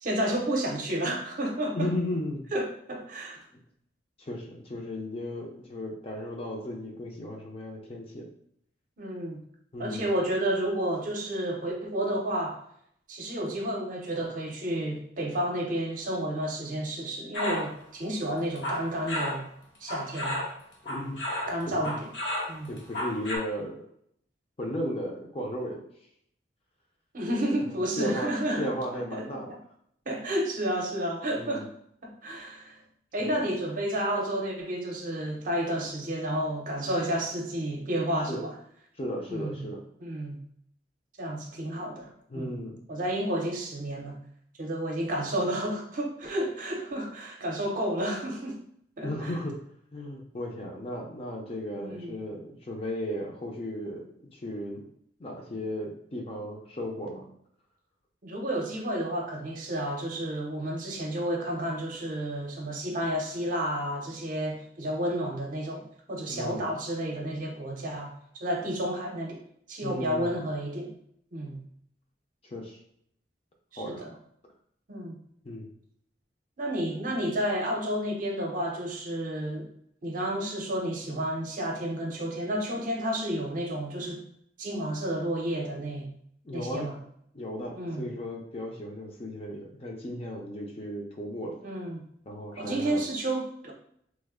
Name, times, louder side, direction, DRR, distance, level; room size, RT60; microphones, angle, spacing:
voice 1, 0.0-1.9 2.5-3.4 9.0-9.4 9.8-12.6 13.1-19.5 19.8-20.4 21.5-22.1 22.5-22.7 27.1-28.7 29.1-29.2 30.1-31.7 32.0-32.8 33.1-38.5 39.3-39.7 40.0-40.4 41.2-42.0 42.3-42.6 42.9-44.2 44.6-48.6 49.0-49.3 51.7-52.1 58.2-69.4 69.7-70.9 71.3-71.6 73.7-74.1 74.9-75.2 76.6-79.7 80.0-84.2 84.6-86.1 86.5-87.0 87.8-88.1 91.6-92.0 92.6-93.7, right 1 dB, 50° right, 0 dB, 0.6 m, -31 dB
voice 2, 1.7-2.5 4.2-8.3 9.7-10.1 20.8-21.2 21.7-22.0 22.7-23.8 24.6-25.8 28.0-29.5 31.3-31.7 33.2-33.4 38.3-38.4 39.0-39.8 42.3-42.8 49.0-49.6 49.9-54.8 55.2-57.3 66.3-66.7 69.8-70.3 72.4-72.8 73.8-74.1 75.4-75.7 86.4-86.9 87.3-91.6 92.3-93.0, left 1 dB, 35° left, 0 dB, 0.5 m, -35 dB
sound 1, 17.3-17.7 18.4-19.4 19.9-21.6 21.8-23.4, left 1 dB, 80° left, 0.8 m, -32 dB
3.1 x 2.0 x 3.5 m, 0.68 s
head